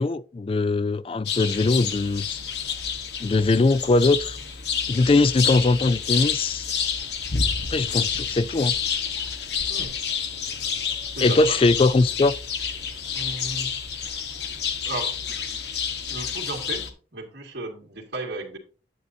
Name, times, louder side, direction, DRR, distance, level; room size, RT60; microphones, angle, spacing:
voice 1, 0.0-2.4 3.2-4.4 4.9-6.7 7.7-8.7 11.2-12.3, left 3 dB, 30° left, 0.3 m, -21 dB
sound 1, 1.3-16.9, left 7 dB, 70° left, 1.2 m, -29 dB
voice 2, 9.7-10.0 11.1-11.6 13.1-13.8 14.8-15.2 16.1-18.6, right 2 dB, 65° right, 2.0 m, -34 dB
9.0 x 8.1 x 2.7 m
head